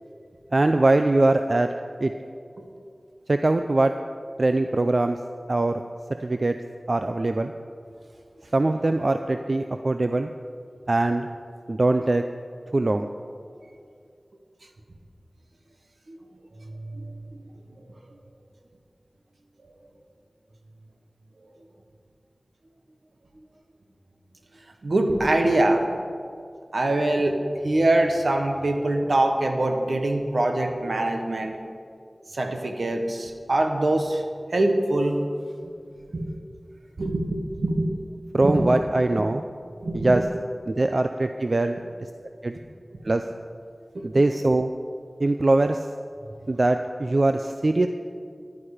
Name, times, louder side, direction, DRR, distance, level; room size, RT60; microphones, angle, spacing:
voice 1, 0.5-1.7 2.0-2.1 3.3-3.9 4.4-5.2 5.5-5.8 6.2-6.6 6.9-7.5 8.5-10.3 10.9-11.3 11.7-12.2 12.7-13.1 38.3-39.4 39.9-40.2 40.7-41.8 42.4-42.5 43.0-43.2 44.0-44.7 45.2-45.8 46.5-47.9, right 2 dB, 55° right, 7 dB, 0.5 m, -22 dB
voice 2, 16.8-17.1 24.8-25.9 26.7-27.4 27.6-31.6 32.3-34.2 34.5-35.3 35.6-35.7 36.0-36.3 37.0-37.9 38.4-38.8 39.8-40.2 43.9-44.2, right 1 dB, 75° right, 4 dB, 1.3 m, -23 dB
14.0 x 11.0 x 5.0 m, 2.3 s
wide cardioid pair, 65°, 0 cm